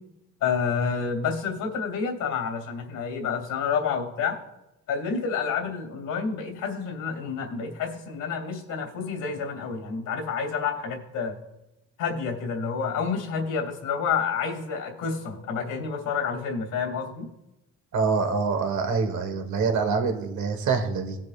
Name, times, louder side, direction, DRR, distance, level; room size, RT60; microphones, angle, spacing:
voice 1, 0.4-4.4 4.9-11.3 12.0-17.3, left 6 dB, 85° left, 4 dB, 2.6 m, -29 dB
voice 2, 17.9-21.2, right 5 dB, 70° right, 6 dB, 1.5 m, -25 dB
18.0 x 7.6 x 2.5 m, 0.94 s
cardioid pair, 90°, 30 cm